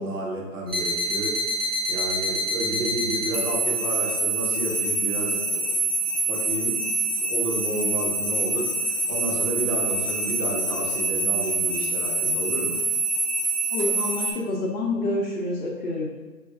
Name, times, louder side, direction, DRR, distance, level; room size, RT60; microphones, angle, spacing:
voice 1, 0.0-5.8 6.2-6.8 7.2-12.8, right 1 dB, 60° right, -2 dB, 1.0 m, -31 dB
sound 1, 0.7-14.3, right 2 dB, 40° right, 0.5 m, -26 dB
voice 2, 13.7-16.1, left 2 dB, 55° left, -4 dB, 0.6 m, -27 dB
4.5 x 2.5 x 2.3 m, 1.3 s
hypercardioid pair, 165°, 49 cm